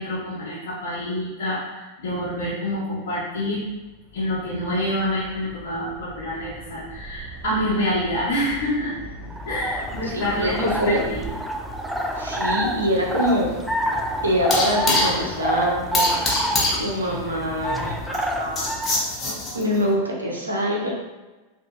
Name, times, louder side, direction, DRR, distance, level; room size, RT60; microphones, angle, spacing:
voice 1, 0.0-3.6 4.1-9.0 9.5-11.2, left 1 dB, 60° left, -10 dB, 1.0 m, -27 dB
sound 1, 3.4-11.4, right 1 dB, 25° right, 1.4 m, -40 dB
sound 2, 9.3-19.1, equal, ahead, 0.4 m, -27 dB
voice 2, 10.0-11.0 12.1-13.6 14.2-16.1 16.8-18.7 19.5-20.9, equal, 75° right, -2 dB, 0.8 m, -25 dB
sound 3, 12.0-19.9, left 2 dB, 25° left, 0.8 m, -27 dB
4.9 x 2.6 x 2.4 m, 1.2 s
figure-of-eight pair, 90°, 0 cm